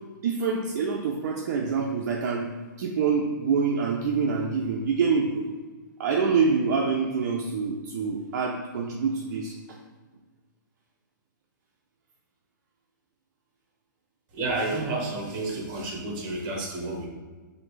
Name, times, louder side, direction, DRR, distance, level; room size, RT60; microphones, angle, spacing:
voice 1, 0.2-2.5 2.8-5.5 6.0-9.8, right 5 dB, 55° right, 0 dB, 0.5 m, -26 dB
voice 2, 14.3-17.1, right 2 dB, 30° right, 0 dB, 1.2 m, -30 dB
6.1 x 2.7 x 3.2 m, 1.3 s
hypercardioid pair, 150°, 11 cm